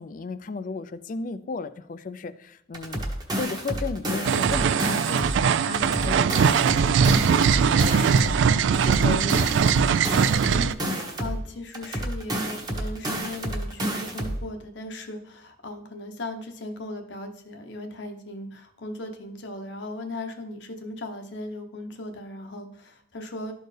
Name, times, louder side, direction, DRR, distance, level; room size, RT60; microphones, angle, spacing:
voice 1, 0.0-10.0, left 4 dB, 45° left, 13 dB, 0.4 m, -35 dB
sound 1, 2.7-5.4 5.7-8.4 8.7-11.4 11.7-14.4, right 1 dB, 20° right, 1.2 m, -30 dB
sound 2, 4.3-10.7, right 6 dB, 80° right, 0.3 m, -21 dB
voice 2, 10.5-23.5, left 1 dB, 75° left, 4 dB, 0.9 m, -37 dB
12.5 x 4.4 x 3.3 m, 0.75 s
head